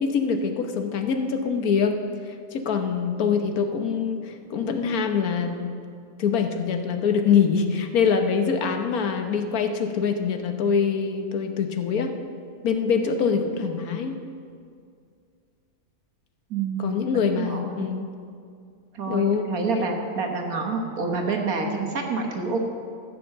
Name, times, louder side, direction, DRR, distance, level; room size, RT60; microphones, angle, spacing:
voice 1, 0.0-2.0 2.5-5.7 6.2-12.1 12.6-14.2 16.8-18.1 19.1-19.5 19.7-20.0, left 6 dB, 80° left, 6 dB, 1.4 m, -24 dB
voice 2, 16.5-17.0 17.3-17.9 18.9-22.6, right 4 dB, 75° right, 2 dB, 1.8 m, -28 dB
14.5 x 6.1 x 7.5 m, 2.3 s
omnidirectional pair, 1.5 m